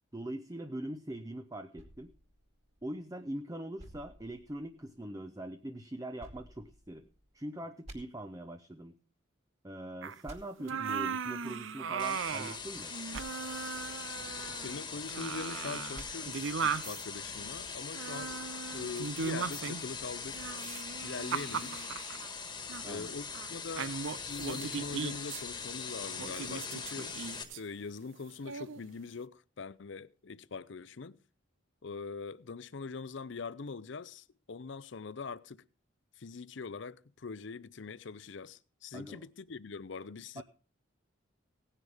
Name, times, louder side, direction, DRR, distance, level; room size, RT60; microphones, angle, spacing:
voice 1, 0.1-2.1 2.8-7.1 7.3-9.0 9.6-12.9 22.8-23.2 38.9-39.2 40.4-40.5, right 1 dB, 15° right, 0.7 m, -42 dB
sound 1, 1.8-3.2 3.8-5.0 6.2-7.3 7.8-8.0 10.2-10.4 13.1-13.3 15.9-16.1, right 1 dB, 35° right, 2.4 m, -51 dB
sound 2, 10.0-10.2 10.6-12.6 12.9-14.8 15.1-17.0 17.9-19.9 20.3-22.3 22.7-22.9 23.3-23.5 23.8-25.4 26.2-27.6 28.4-28.8, right 6 dB, 75° right, 0.6 m, -38 dB
sound 3, 12.0-27.4, left 5 dB, 20° left, 1.5 m, -41 dB
voice 2, 14.5-18.4 18.7-20.5 21.0-21.8 22.9-24.0 24.3-27.1 27.6-31.2 31.8-35.6 36.2-40.4, left 4 dB, 65° left, 0.6 m, -43 dB
17.5 x 9.9 x 3.4 m
head